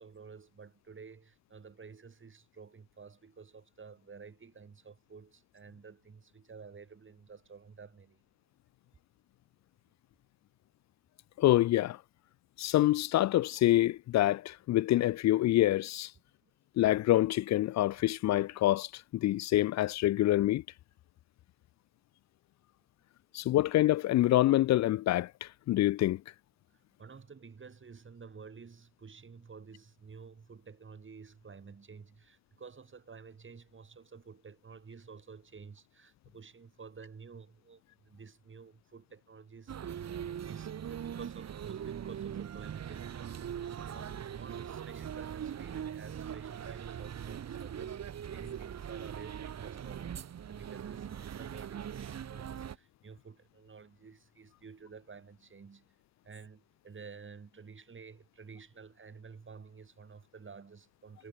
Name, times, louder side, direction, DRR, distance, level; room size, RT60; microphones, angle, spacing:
voice 1, 0.0-8.2 16.4-16.5 26.7-55.9 56.2-61.3, right 5 dB, 40° right, 2.8 m, -51 dB
voice 2, 11.4-12.0 12.6-16.1 16.8-20.6 23.3-26.2, left 15 dB, 65° left, 0.4 m, -26 dB
sound 1, 39.7-52.8, right 9 dB, 60° right, 1.7 m, -41 dB
supercardioid pair, 55°, 29 cm